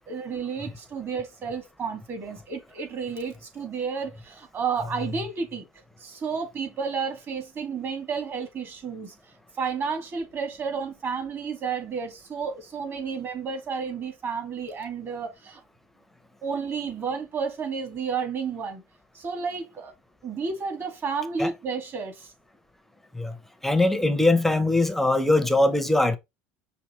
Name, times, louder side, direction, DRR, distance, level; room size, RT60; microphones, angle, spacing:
voice 1, 0.1-5.6 6.0-9.1 9.6-15.6 16.4-18.8 19.1-19.9 20.2-22.3, right 5 dB, 40° right, 1.9 m, -31 dB
voice 2, 23.6-26.2, left 2 dB, 5° left, 0.7 m, -21 dB
5.6 x 2.8 x 3.0 m
supercardioid pair, 105°, 7 cm